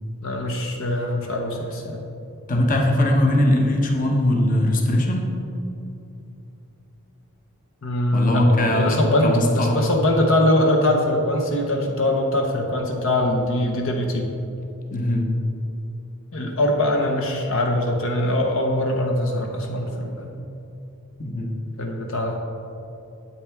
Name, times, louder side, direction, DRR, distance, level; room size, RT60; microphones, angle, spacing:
voice 1, 0.2-2.0 7.8-14.3 16.3-20.4 21.8-22.4, left 1 dB, 65° left, 1 dB, 0.9 m, -22 dB
voice 2, 2.5-5.3 8.1-9.8 14.9-15.3 21.2-21.5, left 1 dB, 40° left, 1 dB, 1.0 m, -20 dB
8.7 x 8.5 x 3.5 m, 2.8 s
head